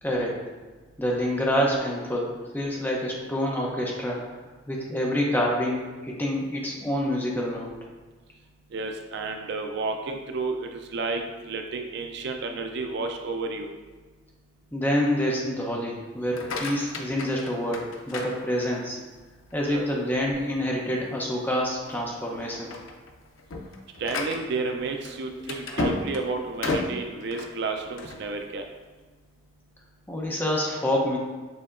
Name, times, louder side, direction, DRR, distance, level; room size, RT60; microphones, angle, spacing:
voice 1, 0.0-0.4 1.0-4.2 4.7-7.7 14.7-19.0 19.5-22.7 30.1-31.2, equal, 10° left, -3 dB, 0.6 m, -27 dB
voice 2, 8.7-13.7 19.7-19.9 24.0-28.6, right 3 dB, 60° right, 4 dB, 0.4 m, -31 dB
sound 1, 16.2-19.0 19.5-20.0 20.4-20.5 20.9-21.1 21.8-22.0 22.4-28.3, left 2 dB, 85° left, 0.5 m, -33 dB
6.8 x 2.7 x 2.5 m, 1.3 s
head